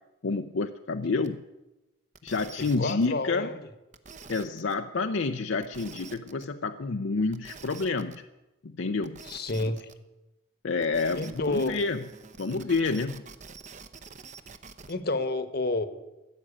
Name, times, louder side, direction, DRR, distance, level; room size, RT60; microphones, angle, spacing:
voice 1, 0.2-1.4 2.2-3.5 4.3-8.2 8.6-9.2 9.6-9.7 10.6-12.0 12.4-13.2, left 3 dB, 65° left, 6 dB, 0.6 m, -29 dB
sound 1, 1.2-1.3 2.1-3.1 3.9-4.7 5.6-6.4 7.3-8.2 9.0-9.9 10.8-14.9, right 5 dB, 35° right, 0.8 m, -47 dB
voice 2, 2.8-3.7 9.2-9.9 11.2-11.8 14.9-15.9, left 2 dB, 50° left, 11 dB, 1.1 m, -29 dB
15.0 x 7.5 x 10.0 m, 1.0 s
head